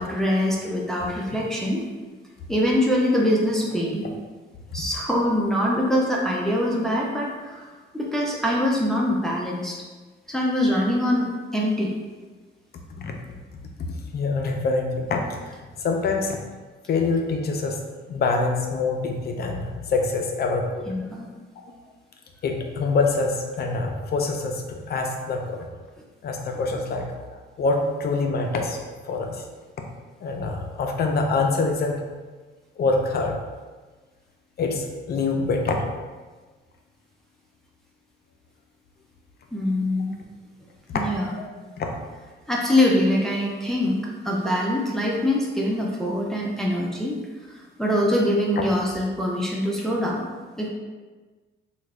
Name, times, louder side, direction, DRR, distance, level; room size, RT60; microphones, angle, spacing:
voice 1, 0.0-1.8 2.5-4.1 4.7-9.8 10.3-12.0 20.9-21.3 39.5-40.1 40.9-41.3 42.5-44.0 44.2-47.2 47.5-50.7, left 1 dB, ahead, -3 dB, 0.5 m, -24 dB
voice 2, 13.9-15.4 15.8-16.4 16.9-17.8 18.1-20.9 22.4-25.7 26.2-27.2 27.6-28.8 29.0-29.4 30.2-32.0 32.8-33.4 34.6-35.8 41.3-41.4 41.8-41.9, left 3 dB, 50° left, 3 dB, 0.5 m, -25 dB
3.0 x 2.2 x 3.5 m, 1.3 s
cardioid pair, 90°, 20 cm